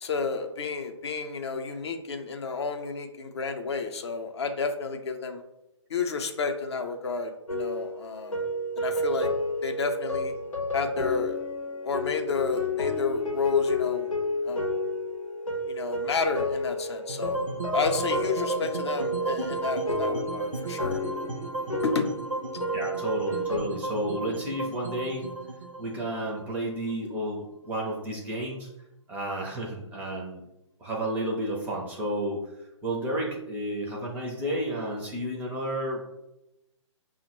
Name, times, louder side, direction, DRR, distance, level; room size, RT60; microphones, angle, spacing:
voice 1, 0.0-5.4 5.9-8.4 8.8-9.3 9.6-10.3 10.7-11.4 11.8-14.1 14.4-14.7 15.7-17.4 17.7-21.0 21.8-22.1, left 4 dB, 60° left, 5 dB, 0.5 m, -31 dB
sound 1, 7.5-23.6, left 1 dB, 90° left, 0.7 m, -31 dB
sound 2, 17.1-27.3, right 2 dB, 85° right, 0.5 m, -34 dB
voice 2, 22.7-25.3 25.8-28.7 29.1-30.4 30.8-32.4 32.8-36.0, right 1 dB, 10° right, -1 dB, 0.4 m, -31 dB
5.2 x 2.0 x 2.9 m, 0.90 s
figure-of-eight pair, 135°, 16 cm